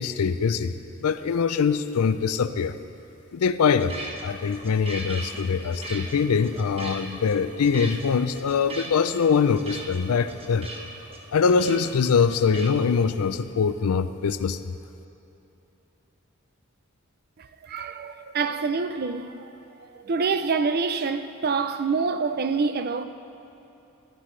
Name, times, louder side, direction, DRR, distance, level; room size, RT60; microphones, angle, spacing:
voice 1, 0.0-2.8 3.3-4.0 4.2-10.7 11.3-14.6, left 6 dB, 90° left, 0.4 m, -23 dB
sound 1, 3.7-12.7, right 1 dB, 25° right, 1.0 m, -39 dB
voice 2, 17.4-19.5 19.8-23.0, right 4 dB, 45° right, 0.5 m, -26 dB
13.5 x 13.5 x 3.2 m
head